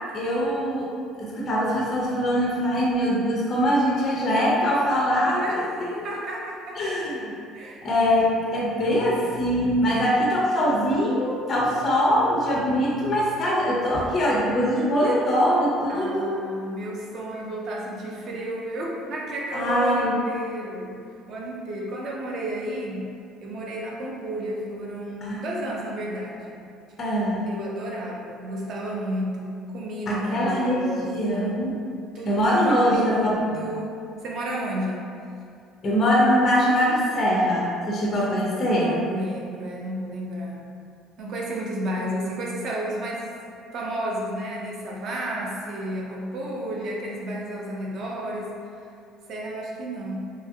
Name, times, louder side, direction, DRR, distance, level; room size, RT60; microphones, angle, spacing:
voice 1, 0.1-0.9 1.2-5.6 6.0-6.1 6.8-7.3 7.8-16.3 19.5-20.2 25.2-25.4 27.0-27.5 30.1-31.7 32.3-33.7 35.8-38.9, equal, 25° left, -5 dB, 0.4 m, -22 dB
voice 2, 5.4-6.8 7.5-7.9 15.9-23.1 23.4-26.5 27.4-31.7 32.1-35.1 38.6-40.6 41.2-43.3 43.7-48.5 49.3-50.3, right 1 dB, 40° right, -2 dB, 0.4 m, -32 dB
2.7 x 2.4 x 2.6 m, 2.4 s
cardioid pair, 175°, 0 cm